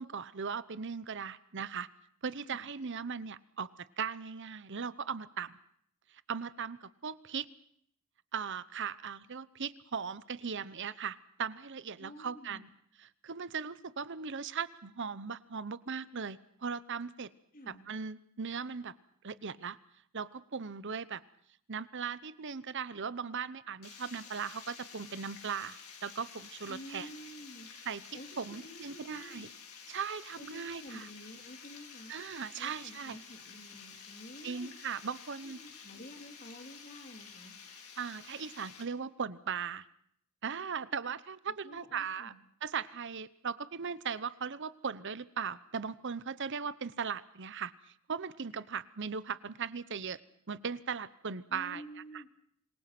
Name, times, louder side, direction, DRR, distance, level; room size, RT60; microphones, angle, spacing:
voice 1, 0.0-1.9 2.2-3.7 4.0-5.5 6.1-7.5 8.3-12.7 13.0-17.3 17.7-18.9 19.2-19.8 20.1-21.2 21.7-27.1 27.9-28.0 28.4-29.5 29.9-31.1 32.1-33.2 34.4-35.6 38.0-39.9 40.4-42.3 42.6-50.2 50.5-51.8 52.1-52.2, right 6 dB, 55° right, 16 dB, 0.9 m, -38 dB
voice 2, 12.0-12.7 17.5-17.9 26.7-27.7 28.1-29.5 30.4-32.1 32.6-34.7 35.4-35.5 35.8-37.5 41.6-42.4 51.5-52.3, equal, 40° left, 5 dB, 3.3 m, -50 dB
Water, 23.8-38.8, left 6 dB, 90° left, 5.1 m, -51 dB
26.5 x 22.5 x 6.0 m, 0.66 s
head